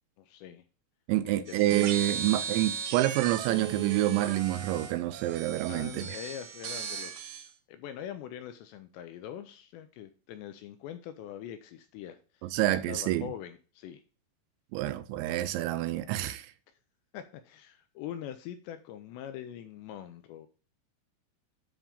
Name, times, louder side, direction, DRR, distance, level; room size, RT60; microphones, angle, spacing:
voice 1, 0.2-0.6 1.2-1.5 2.1-2.3 5.7-12.5 12.9-14.0 17.1-20.5, left 10 dB, 80° left, 2.5 m, -43 dB
voice 2, 1.1-6.0 12.4-13.3 14.7-16.5, right 14 dB, 85° right, 2.8 m, -28 dB
sound 1, 1.5-7.5, right 7 dB, 70° right, 2.4 m, -37 dB
10.0 x 3.6 x 5.2 m
omnidirectional pair, 5.5 m